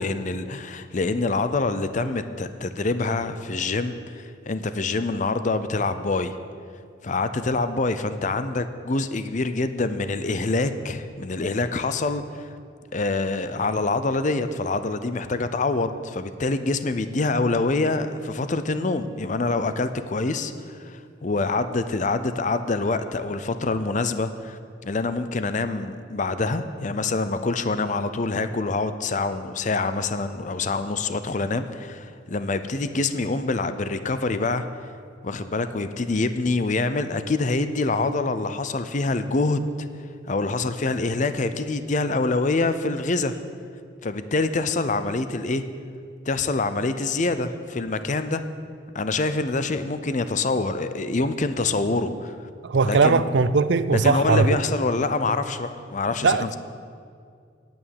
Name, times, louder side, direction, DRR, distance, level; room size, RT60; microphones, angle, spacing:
voice 1, 0.0-6.4 7.0-12.5 12.9-34.7 35.2-39.9 40.3-43.4 44.0-45.6 46.3-48.4 48.9-52.5 52.8-53.2 53.9-56.6, left 3 dB, 40° left, 0.5 m, -26 dB
voice 2, 52.6-54.5 56.2-56.6, right 4 dB, 60° right, 0.5 m, -19 dB
8.8 x 8.7 x 9.4 m
head